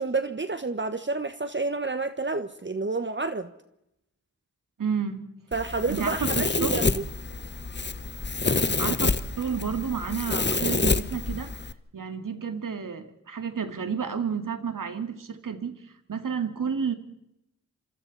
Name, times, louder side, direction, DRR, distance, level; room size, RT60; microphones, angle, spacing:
voice 1, 0.0-3.5 5.5-6.9, right 3 dB, 35° right, 9 dB, 1.5 m, -29 dB
voice 2, 4.8-5.2 5.9-6.9 8.8-11.6 11.9-16.9, right 6 dB, 75° right, 7 dB, 2.4 m, -31 dB
Domestic sounds home sounds, 5.5-11.7, left 3 dB, 35° left, 1.3 m, -28 dB
27.0 x 25.5 x 4.3 m, 0.82 s
cardioid pair, 40°, 32 cm